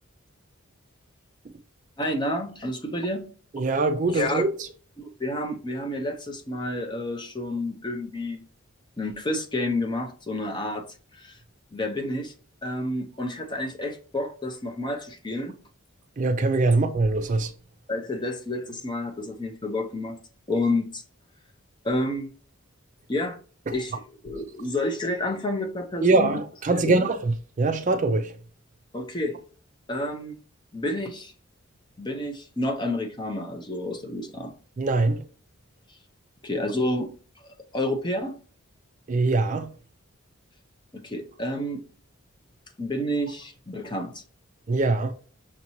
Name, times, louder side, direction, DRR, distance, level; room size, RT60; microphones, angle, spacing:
voice 1, 2.0-3.3 4.1-4.5 5.0-8.4 9.0-10.9 11.1-11.4 11.7-12.3 12.6-15.5 17.9-20.2 20.5-21.0 21.8-22.3 23.1-23.4 23.7-26.4 26.7-27.1 28.9-29.4 29.9-30.3 30.7-31.3 32.0-34.5 36.4-37.1 37.7-38.3 40.9-41.8 42.8-44.2, left 1 dB, 20° left, 0.6 m, -29 dB
voice 2, 3.5-4.5 16.2-17.5 26.0-28.3 34.8-35.2 39.1-39.7 44.7-45.1, right 3 dB, 35° right, 0.3 m, -23 dB
5.8 x 2.8 x 2.9 m
head